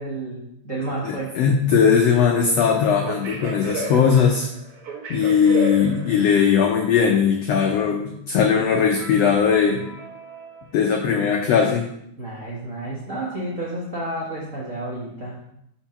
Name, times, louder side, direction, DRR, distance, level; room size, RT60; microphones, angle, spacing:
voice 1, 0.0-1.4 12.2-15.4, right 2 dB, 80° right, -6 dB, 0.7 m, -31 dB
voice 2, 1.0-4.5 5.1-9.9 10.7-11.9, left 6 dB, 90° left, 2 dB, 1.4 m, -19 dB
sound 1, 2.9-6.6 9.0-11.1, right 2 dB, 60° right, 1.6 m, -34 dB
4.6 x 4.4 x 5.6 m, 0.76 s
omnidirectional pair, 3.6 m